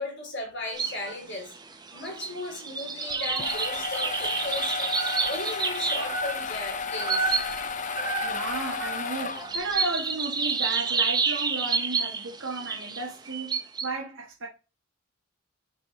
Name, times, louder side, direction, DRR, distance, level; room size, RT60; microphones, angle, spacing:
voice 1, 0.0-1.5 1.9-7.3, left 2 dB, 55° left, 3.2 m, -36 dB
sound 1, 0.7-1.2 1.5-13.9, right 5 dB, 20° right, 0.8 m, -29 dB
sound 2, 3.1-9.8, left 5 dB, 35° left, 0.6 m, -33 dB
voice 2, 8.2-14.5, right 3 dB, 65° right, 1.6 m, -34 dB
6.6 x 5.0 x 5.2 m
head